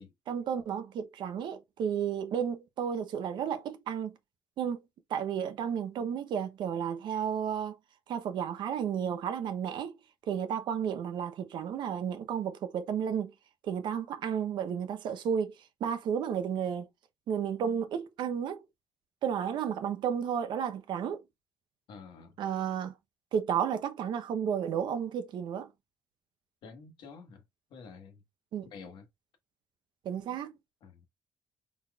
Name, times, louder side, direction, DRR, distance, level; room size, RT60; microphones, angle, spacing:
voice 1, 0.3-4.2 4.6-4.8 5.1-7.8 8.1-9.9 10.3-13.3 13.6-15.5 15.8-16.9 17.3-18.6 19.2-21.2 22.4-22.9 23.3-25.7 28.5-28.7 30.0-30.5, right 8 dB, 70° right, 0.7 m, -32 dB
voice 2, 21.9-22.3 26.6-27.4 27.7-28.2 28.7-29.1 30.8-31.0, left 5 dB, 70° left, 1.3 m, -49 dB
4.0 x 4.0 x 2.3 m
cardioid pair, 80°, 8 cm